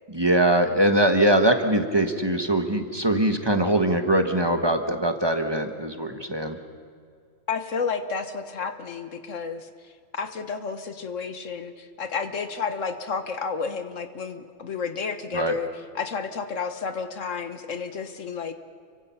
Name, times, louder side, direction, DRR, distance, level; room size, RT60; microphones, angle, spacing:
voice 1, 0.1-6.6 15.3-15.5, right 1 dB, 20° right, 6 dB, 1.4 m, -22 dB
voice 2, 7.5-9.7 10.1-15.7 16.0-18.5, left 5 dB, 80° left, 9 dB, 1.7 m, -31 dB
29.5 x 24.0 x 5.8 m, 2.2 s
omnidirectional pair, 1.3 m